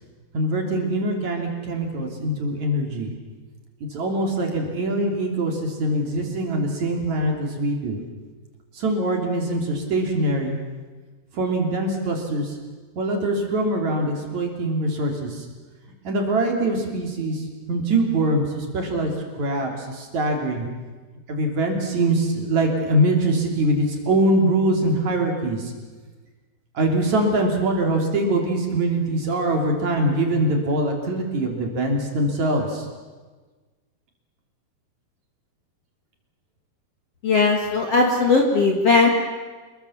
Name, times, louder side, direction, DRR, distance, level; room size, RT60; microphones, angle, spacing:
voice 1, 0.3-3.1 3.8-8.0 8.7-10.6 11.3-12.5 13.0-15.4 16.0-17.4 17.7-19.1 19.4-20.7 21.3-25.7 26.7-32.9, right 1 dB, 45° right, 2 dB, 4.1 m, -23 dB
voice 2, 37.2-39.1, left 3 dB, 45° left, 1 dB, 2.5 m, -18 dB
27.5 x 22.0 x 7.2 m, 1.3 s
omnidirectional pair, 4.8 m